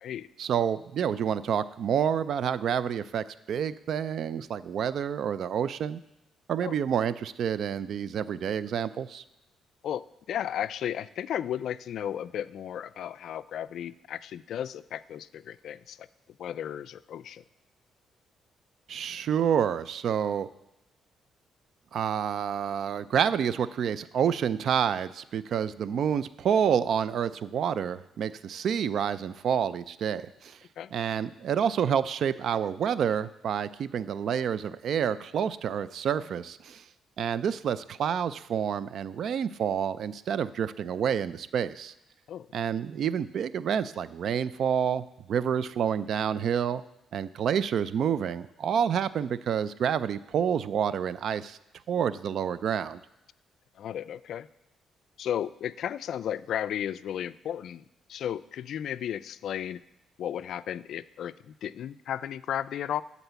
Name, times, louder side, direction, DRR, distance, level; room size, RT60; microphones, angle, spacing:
voice 1, 0.4-6.0 6.5-9.2 18.9-20.5 21.9-30.6 30.9-36.8 37.2-41.9 42.5-46.8 47.1-51.6 51.9-53.0, right 8 dB, 65° right, 16 dB, 0.4 m, -28 dB
voice 2, 9.8-16.1 16.4-17.4 30.8-30.9 42.3-42.5 53.8-54.5 55.2-57.8 58.1-59.8 60.2-63.0, left 10 dB, 70° left, 16 dB, 0.3 m, -34 dB
12.5 x 4.1 x 6.9 m, 0.90 s
cardioid pair, 90°, 0 cm